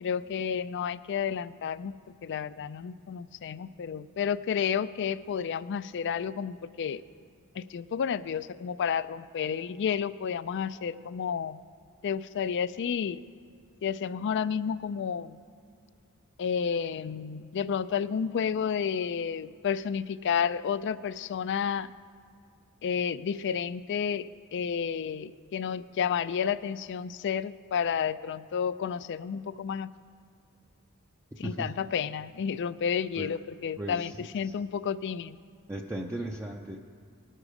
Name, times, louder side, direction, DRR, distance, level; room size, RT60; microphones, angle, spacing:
voice 1, 0.0-7.0 7.6-11.6 12.0-13.2 13.8-15.4 16.4-21.9 22.8-29.9 31.4-35.4, left 7 dB, 55° left, 16 dB, 0.3 m, -31 dB
voice 2, 31.4-31.7 33.2-33.3 33.8-34.5 35.7-36.8, right 1 dB, 10° right, 0 dB, 0.5 m, -37 dB
19.0 x 6.5 x 4.9 m, 2.4 s
head